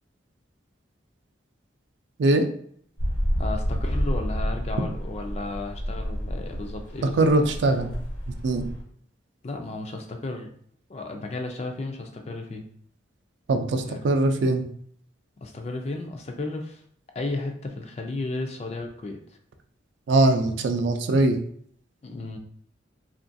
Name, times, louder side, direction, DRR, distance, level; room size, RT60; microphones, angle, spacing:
sound 1, 3.0-8.8, equal, 85° left, 1.1 m, -29 dB
voice 1, 3.4-7.5 9.4-10.5 10.9-12.7 13.8-14.0 15.4-16.8 17.1-19.2 22.0-22.4, left 2 dB, 35° left, 4 dB, 0.3 m, -34 dB
voice 2, 7.0-7.9 8.3-8.7 13.5-14.6 20.1-21.4, right 2 dB, 70° right, 6 dB, 0.3 m, -22 dB
3.0 x 2.4 x 2.5 m, 0.63 s
head